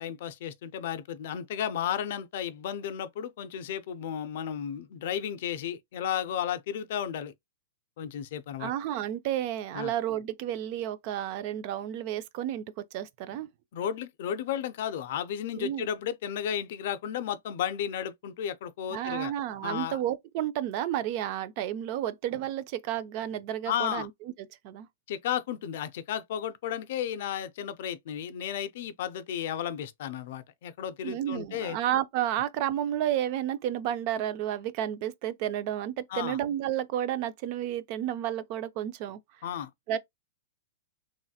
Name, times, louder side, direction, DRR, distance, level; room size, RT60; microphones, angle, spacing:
voice 1, 0.0-7.3 8.0-8.7 9.7-9.9 13.7-19.3 19.6-20.0 23.7-24.1 25.1-31.8 36.1-36.4 39.4-39.7, left 9 dB, 55° left, 0.4 m, -33 dB
voice 2, 8.6-12.6 12.9-13.5 15.6-15.9 18.9-24.1 24.6-24.9 31.0-39.2 39.9-40.0, right 11 dB, 40° right, 0.3 m, -31 dB
3.1 x 2.7 x 2.3 m
hypercardioid pair, 150°, 0 cm